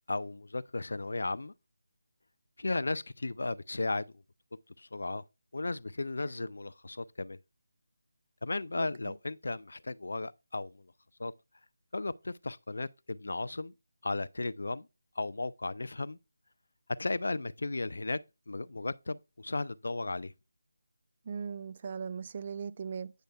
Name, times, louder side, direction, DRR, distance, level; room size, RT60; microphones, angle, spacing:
voice 1, 0.1-1.5 2.6-4.1 4.8-5.2 5.5-7.4 8.4-10.9 11.2-11.3 11.9-13.7 14.0-14.9 15.2-16.2 17.0-18.2 18.5-20.3, left 2 dB, 65° left, 0.3 m, -35 dB
voice 2, 8.8-9.1 21.3-23.1, right 6 dB, 35° right, 0.4 m, -39 dB
9.0 x 6.4 x 2.3 m
figure-of-eight pair, 160°, 0 cm